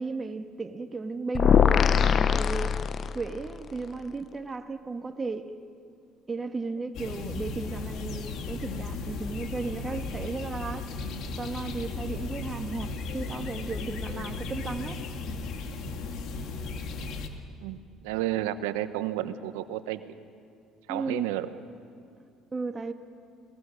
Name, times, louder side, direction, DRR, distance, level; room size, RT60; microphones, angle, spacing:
voice 1, 0.0-2.7 3.1-5.5 6.3-11.0 11.3-15.0 20.9-21.3 22.5-22.9, right 4 dB, 25° right, 1.6 m, -35 dB
sound 1, 1.3-3.5, left 7 dB, 45° left, 0.7 m, -22 dB
sound 2, 6.9-17.3, left 4 dB, 65° left, 2.1 m, -36 dB
voice 2, 17.6-20.0 20.9-21.5, right 13 dB, 90° right, 1.0 m, -31 dB
28.0 x 20.0 x 6.5 m
supercardioid pair, 75°, 0 cm